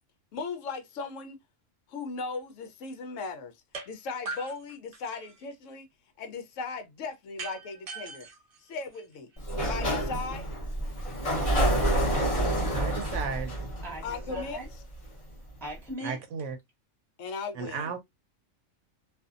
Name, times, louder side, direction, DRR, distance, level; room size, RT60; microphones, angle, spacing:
voice 1, 0.3-1.4 1.9-3.5 3.9-5.9 6.2-8.3 8.6-9.3 9.7-10.5 14.0-14.6 17.2-17.9, left 4 dB, 75° left, 1.0 m, -37 dB
sound 1, 3.7-3.9 4.3-5.5 7.4-9.4, right 4 dB, 45° right, 0.5 m, -41 dB
Sliding door, 9.4-15.0, right 1 dB, 30° left, 0.8 m, -28 dB
voice 2, 12.7-13.7 16.0-16.6 17.6-18.0, right 6 dB, 70° right, 0.9 m, -34 dB
voice 3, 13.8-14.7 15.3-16.2, right 1 dB, ahead, 0.9 m, -40 dB
2.6 x 2.4 x 2.4 m
omnidirectional pair, 1.4 m